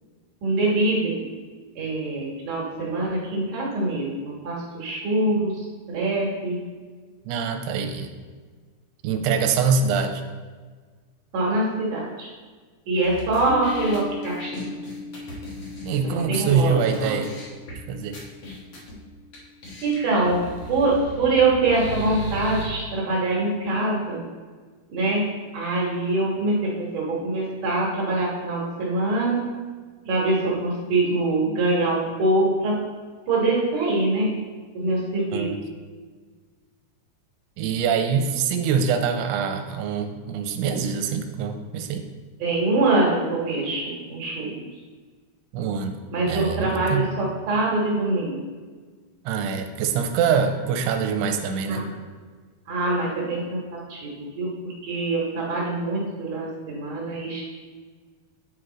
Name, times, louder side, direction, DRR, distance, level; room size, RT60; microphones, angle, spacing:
voice 1, 0.4-1.1 1.8-5.6 5.9-6.6 11.3-12.3 12.9-14.7 16.0-17.2 19.8-20.4 20.7-24.2 24.9-25.3 25.5-29.4 30.0-32.8 33.3-34.3 34.7-35.5 42.4-44.7 46.1-48.4 51.7-51.8 52.7-53.6 53.9-57.4, right 2 dB, 60° right, -4 dB, 2.3 m, -24 dB
voice 2, 7.3-8.1 9.0-10.2 15.8-17.3 17.9-18.2 35.3-35.6 37.6-42.1 45.5-46.0 46.3-47.1 49.3-51.9, right 6 dB, 85° right, 6 dB, 2.6 m, -24 dB
sound 1, 13.0-16.6 16.9-17.0 17.2-17.8 18.1-18.9 19.3-19.4 19.6-22.6, right 1 dB, 70° left, 1.3 m, -36 dB
sound 2, 13.5-20.2, left 1 dB, 15° right, 1.0 m, -39 dB
9.3 x 4.6 x 3.8 m, 1.5 s
omnidirectional pair, 4.8 m